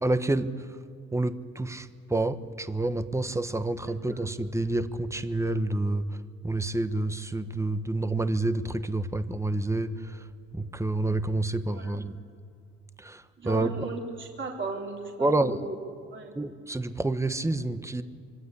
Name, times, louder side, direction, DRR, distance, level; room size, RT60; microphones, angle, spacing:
voice 1, 0.0-0.5 1.1-6.1 6.4-10.2 10.5-12.1 13.0-13.8 15.2-15.6 16.3-18.0, right 2 dB, 10° right, 11 dB, 1.2 m, -28 dB
voice 2, 13.4-15.7 16.1-16.4, right 3 dB, 40° right, 0 dB, 3.8 m, -36 dB
25.5 x 22.5 x 8.5 m, 2.3 s
cardioid pair, 90°, 30 cm